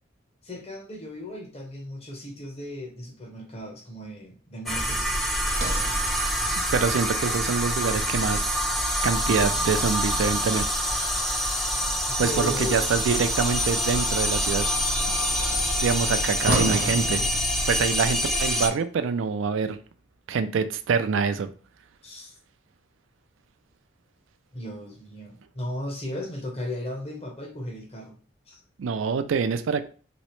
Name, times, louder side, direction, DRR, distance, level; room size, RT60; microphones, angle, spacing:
voice 1, 0.4-5.2 12.1-13.0 22.0-22.3 24.5-28.2 28.5-28.6, left 1 dB, 30° left, 1 dB, 0.9 m, -36 dB
sound 1, 4.7-18.7, equal, ahead, 0.3 m, -26 dB
Sliding door, 5.4-9.7 13.2-18.1, right 2 dB, 55° right, 0.7 m, -35 dB
voice 2, 6.7-8.5 9.0-10.7 12.2-14.6 15.8-17.2 17.7-19.8 20.3-21.5 28.8-29.9, right 5 dB, 85° right, 10 dB, 0.4 m, -25 dB
3.1 x 3.0 x 3.0 m, 0.39 s
head